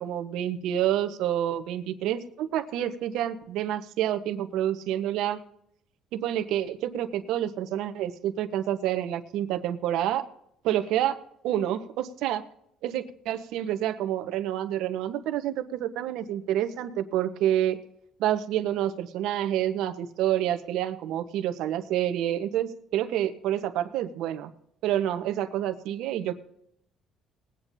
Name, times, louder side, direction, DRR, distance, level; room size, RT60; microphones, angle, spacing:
voice 1, 0.0-5.4 6.1-10.3 10.6-11.2 11.4-12.4 12.8-17.8 18.2-24.5 24.8-26.3, right 11 dB, 75° right, 8 dB, 1.1 m, -28 dB
20.5 x 9.2 x 2.7 m, 0.74 s
cardioid pair, 120°, 0 cm